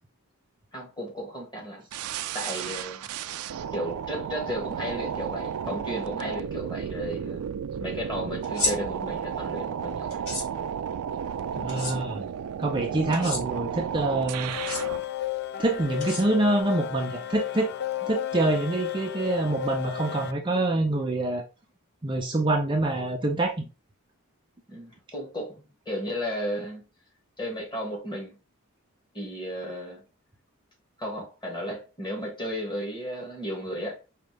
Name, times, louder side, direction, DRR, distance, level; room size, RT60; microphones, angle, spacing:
voice 1, 0.7-1.9 2.3-3.1 3.7-7.4 7.8-10.3 24.7-26.9 27.4-28.4 29.1-30.1 31.0-34.0, equal, 20° left, 1.8 m, -34 dB
sound 1, 1.9-15.0, right 8 dB, 85° right, 0.4 m, -33 dB
sound 2, 8.4-8.7 10.1-10.5 11.7-11.9 13.1-13.4 14.5-14.8 16.0-16.6, left 2 dB, 70° left, 1.8 m, -30 dB
voice 2, 11.5-12.2 12.6-14.5 15.6-17.7 18.0-21.4 22.0-23.7, right 2 dB, 20° right, 0.5 m, -26 dB
sound 3, 14.5-20.3, left 11 dB, 50° left, 0.4 m, -33 dB
5.1 x 2.8 x 3.3 m
head